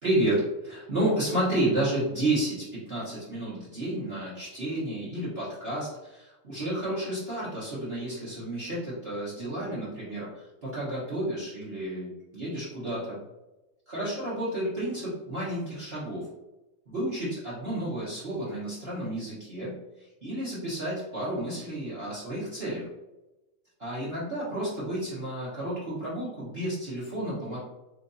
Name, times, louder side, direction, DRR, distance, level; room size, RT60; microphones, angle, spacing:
voice 1, 0.0-13.2 13.9-16.3 16.9-22.9 23.8-27.6, right 1 dB, 40° right, -10 dB, 1.2 m, -31 dB
4.5 x 2.6 x 2.6 m, 1.0 s
omnidirectional pair, 2.0 m